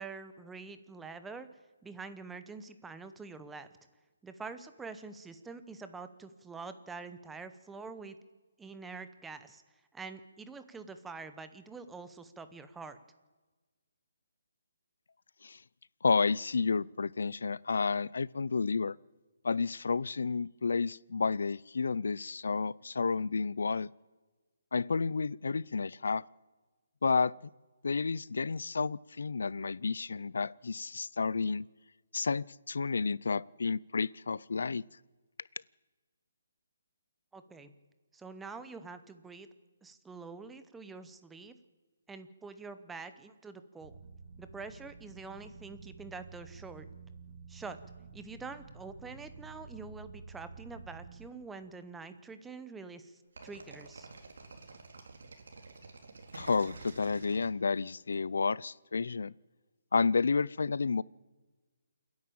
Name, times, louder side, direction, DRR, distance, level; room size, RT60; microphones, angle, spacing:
voice 1, 0.0-1.5 1.8-3.7 4.2-8.2 8.6-9.6 9.9-13.0 37.3-37.7 38.1-39.5 39.8-41.5 42.1-44.0 44.4-46.8 47.5-47.8 48.1-54.1, right 4 dB, 5° right, 10 dB, 0.9 m, -46 dB
voice 2, 16.0-18.9 19.4-23.9 24.7-26.2 27.0-27.3 27.8-31.7 32.1-34.8 56.3-59.3 59.9-61.0, left 4 dB, 75° left, 24 dB, 0.5 m, -31 dB
sound 1, 43.8-51.3, right 4 dB, 50° right, 2.4 m, -50 dB
sound 2, 53.4-58.1, right 3 dB, 75° right, 3.7 m, -49 dB
28.5 x 10.5 x 8.8 m, 1.3 s
hypercardioid pair, 165°, 0 cm